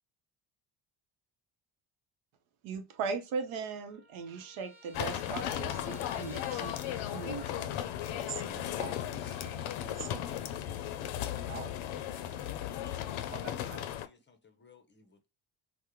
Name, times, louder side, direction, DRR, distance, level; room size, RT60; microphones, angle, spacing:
voice 1, 2.6-6.8 7.1-7.8, right 5 dB, 85° right, 0.8 m, -38 dB
Trumpet, 2.9-3.0 3.3-7.7, right 1 dB, 5° right, 0.9 m, -56 dB
sound 1, 4.9-14.1, left 11 dB, 85° left, 0.5 m, -36 dB
voice 2, 8.1-10.4 11.5-11.7 13.3-13.8, right 8 dB, 30° right, 0.4 m, -46 dB
voice 3, 13.3-15.3, left 4 dB, 25° left, 0.5 m, -59 dB
3.5 x 2.1 x 2.9 m
cardioid pair, 100°, 47 cm